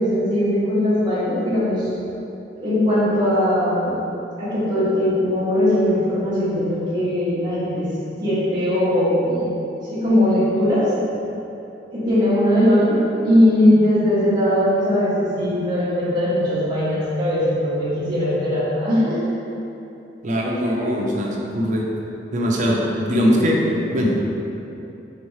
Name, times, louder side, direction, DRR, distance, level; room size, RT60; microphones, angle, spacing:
voice 1, 0.0-1.9 2.6-4.0 4.4-7.9 8.2-10.9 11.9-19.2, left 1 dB, 25° right, -13 dB, 1.0 m, -19 dB
voice 2, 20.2-21.8 22.3-24.2, equal, 45° right, -2 dB, 0.6 m, -21 dB
4.9 x 3.1 x 3.1 m, 2.9 s
head